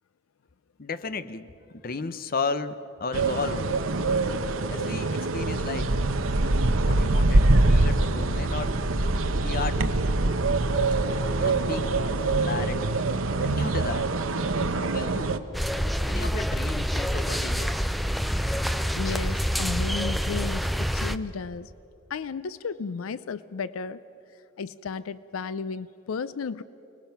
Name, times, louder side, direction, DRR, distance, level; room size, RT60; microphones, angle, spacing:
voice 1, 0.8-3.7 4.7-6.0 6.8-8.7 9.3-10.0 11.4-12.9 13.4-14.1 14.8-15.4 16.0-17.8, left 4 dB, 45° left, 12 dB, 0.7 m, -34 dB
sound 1, 3.1-15.4, right 2 dB, 75° right, 1.0 m, -24 dB
sound 2, 15.5-21.2, equal, ahead, 0.4 m, -27 dB
voice 2, 19.0-20.7 20.9-21.7 22.1-24.0 24.6-26.6, left 5 dB, 85° left, 16 dB, 0.5 m, -33 dB
29.0 x 20.0 x 5.9 m, 2.8 s
head